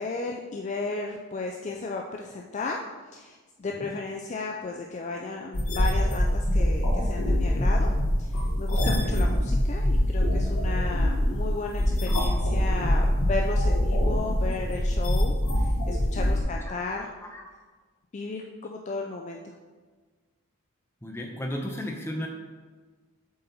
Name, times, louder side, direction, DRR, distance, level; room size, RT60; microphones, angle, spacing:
voice 1, 0.0-2.8 3.1-7.9 8.2-17.1 18.1-19.5, left 3 dB, 30° left, 1 dB, 0.3 m, -34 dB
sound 1, 5.5-16.4, left 1 dB, 75° left, 1.3 m, -24 dB
voice 2, 16.3-17.4 21.0-22.3, left 1 dB, 10° left, 1 dB, 0.7 m, -36 dB
7.4 x 4.2 x 4.0 m, 1.4 s
head